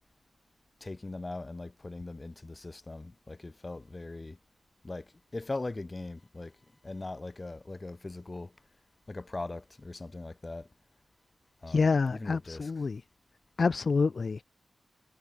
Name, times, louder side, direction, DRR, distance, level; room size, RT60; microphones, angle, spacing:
voice 1, 0.8-4.4 4.8-8.5 9.1-10.7 11.6-12.9, left 2 dB, 25° left, 4.1 m, -40 dB
voice 2, 11.7-13.0 13.6-14.4, left 4 dB, 45° left, 0.3 m, -27 dB
wide cardioid pair, 180°, 0 cm